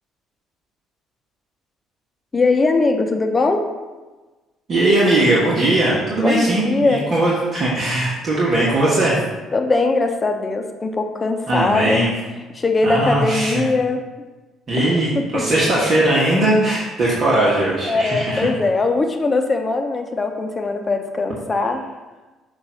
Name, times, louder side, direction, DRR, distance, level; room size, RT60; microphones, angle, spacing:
voice 1, 2.3-3.7 6.2-7.1 9.5-12.1 12.5-14.0 14.8-15.5 17.9-21.9, left 3 dB, 30° left, 5 dB, 0.8 m, -20 dB
voice 2, 4.7-9.2 11.5-12.1 12.8-13.6 14.7-18.5, right 1 dB, 50° right, -6 dB, 1.4 m, -19 dB
6.7 x 2.6 x 5.6 m, 1.2 s
hypercardioid pair, 60°, 0 cm